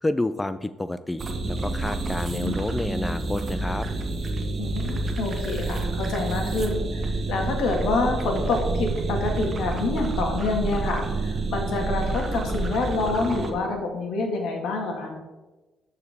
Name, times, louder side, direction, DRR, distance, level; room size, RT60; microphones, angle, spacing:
voice 1, 0.0-3.9, left 1 dB, 15° left, 12 dB, 0.3 m, -29 dB
sound 1, 1.2-13.5, right 2 dB, 45° right, 1.2 m, -28 dB
voice 2, 4.6-15.2, left 3 dB, 80° left, 2 dB, 1.7 m, -27 dB
13.0 x 4.7 x 3.5 m, 1.1 s
cardioid pair, 90°, 0 cm